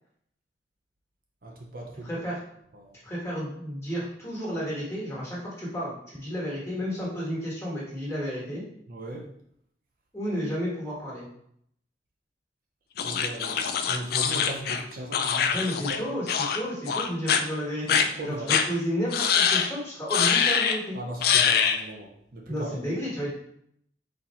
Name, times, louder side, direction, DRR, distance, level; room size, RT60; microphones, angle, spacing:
voice 1, 1.4-2.2 2.7-3.0 8.9-9.3 13.0-16.0 18.2-18.5 20.9-22.8, right 1 dB, 55° right, 0 dB, 0.6 m, -38 dB
voice 2, 2.0-2.4 3.0-8.6 10.1-11.3 15.5-21.0 22.5-23.3, equal, 15° left, -7 dB, 1.5 m, -32 dB
sound 1, 13.0-16.0 16.3-16.6 16.9-17.4 17.9-18.0 18.5-18.6 19.1-19.7 20.1-20.8 21.2-21.8, left 7 dB, 60° left, 0.3 m, -24 dB
4.0 x 2.6 x 4.3 m, 0.70 s
head